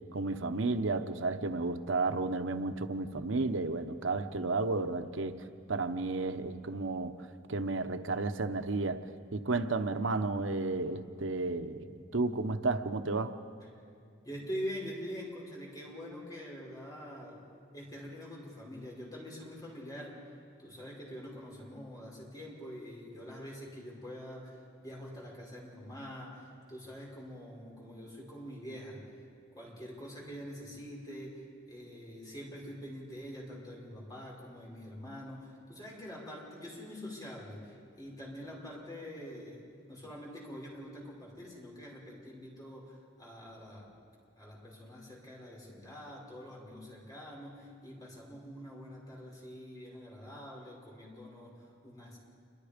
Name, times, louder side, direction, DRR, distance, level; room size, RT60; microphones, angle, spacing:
voice 1, 0.1-7.1 7.5-9.0 9.3-13.4, right 3 dB, 90° right, 9 dB, 0.9 m, -32 dB
voice 2, 14.2-17.4 17.7-20.3 20.6-29.2 29.5-43.9 44.4-52.2, equal, 20° left, -3 dB, 5.4 m, -45 dB
27.5 x 23.5 x 5.2 m, 2.3 s
head